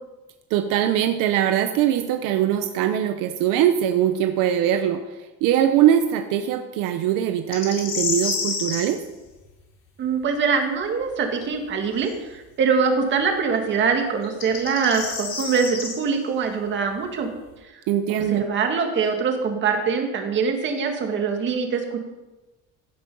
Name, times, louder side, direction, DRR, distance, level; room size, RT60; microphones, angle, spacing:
voice 1, 0.5-5.0 5.4-9.0 17.9-18.4, right 10 dB, 75° right, 7 dB, 1.0 m, -21 dB
sound 1, 7.5-8.9 12.0-12.1 14.2-15.9, left 4 dB, 40° left, 4.3 m, -28 dB
voice 2, 10.0-17.3 17.6-17.7 18.3-22.0, right 5 dB, 35° right, 4 dB, 1.9 m, -23 dB
16.5 x 8.5 x 5.5 m, 1.1 s
cardioid pair, 175°, 32 cm